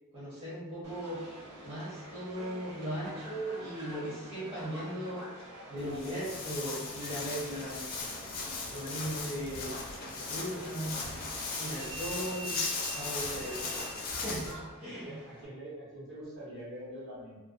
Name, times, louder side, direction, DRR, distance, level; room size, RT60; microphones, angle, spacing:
voice 1, 0.1-1.2 1.6-5.2 5.7-8.1 8.7-9.8 10.1-11.0 11.6-12.6 12.9-13.7 14.0-15.2, equal, 25° right, -10 dB, 0.8 m, -38 dB
Subway metro underground, 0.8-15.5, right 1 dB, 90° right, 0.6 m, -46 dB
Walk footsteps, 5.8-14.5, left 4 dB, 40° left, 0.4 m, -38 dB
voice 2, 14.9-17.4, equal, 55° right, -9 dB, 1.2 m, -44 dB
2.5 x 2.0 x 2.5 m, 1.3 s
head